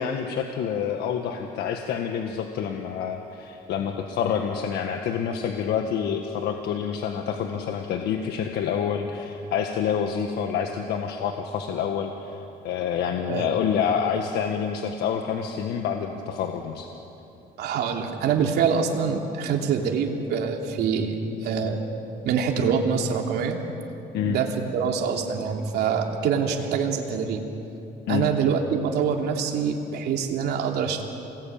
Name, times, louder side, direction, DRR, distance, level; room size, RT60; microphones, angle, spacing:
voice 1, 0.0-12.4 12.6-16.9 24.1-24.3 28.1-28.2, left 7 dB, 80° left, 4 dB, 1.6 m, -27 dB
voice 2, 17.6-21.8 22.2-23.6 24.2-27.4 28.1-31.0, right 6 dB, 75° right, 2 dB, 2.9 m, -25 dB
28.0 x 20.0 x 8.8 m, 2.9 s
cardioid pair, 110°, 17 cm